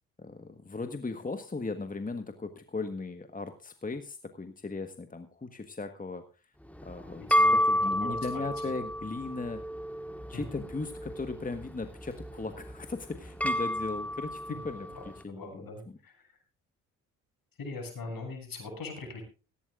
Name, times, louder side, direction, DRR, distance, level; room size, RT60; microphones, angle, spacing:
voice 1, 0.2-6.2 6.8-9.6 10.3-16.0, left 3 dB, 20° left, 8 dB, 1.5 m, -38 dB
sound 1, 6.7-15.2, equal, 5° left, 1.6 m, -31 dB
voice 2, 7.2-8.7 10.3-10.4 14.5-14.6 15.0-16.4 17.6-19.2, left 3 dB, 60° left, 4 dB, 7.3 m, -42 dB
17.5 x 16.0 x 2.5 m, 0.33 s
hypercardioid pair, 45°, 40 cm